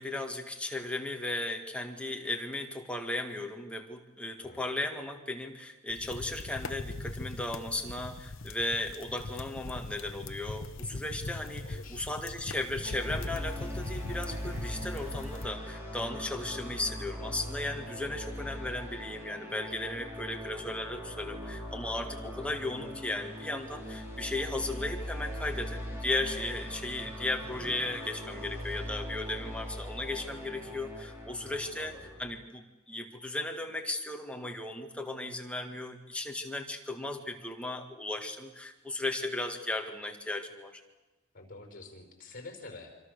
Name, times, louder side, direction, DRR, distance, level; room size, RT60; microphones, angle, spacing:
voice 1, 0.0-31.9 32.2-40.8, left 2 dB, 5° left, 3 dB, 1.8 m, -36 dB
sound 1, 5.9-15.5, left 2 dB, 60° left, 1.0 m, -41 dB
voice 2, 11.6-12.0 18.1-18.2 31.4-32.1 41.3-43.0, left 2 dB, 40° left, 5 dB, 5.1 m, -48 dB
sound 2, 12.8-32.3, equal, 10° right, 4.6 m, -40 dB
25.5 x 25.5 x 6.7 m, 1.1 s
head